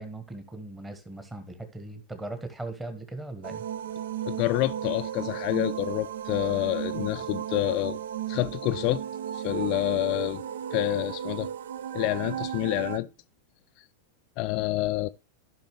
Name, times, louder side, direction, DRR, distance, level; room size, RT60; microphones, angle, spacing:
voice 1, 0.0-3.6, right 2 dB, 10° right, 1.4 m, -39 dB
sound 1, 3.4-13.0, right 10 dB, 60° right, 0.5 m, -34 dB
voice 2, 4.3-8.0 8.3-9.0 9.3-10.4 10.7-11.5 11.9-13.1 14.4-15.1, left 18 dB, 45° left, 0.3 m, -28 dB
13.5 x 5.7 x 3.2 m
figure-of-eight pair, 90°, 0 cm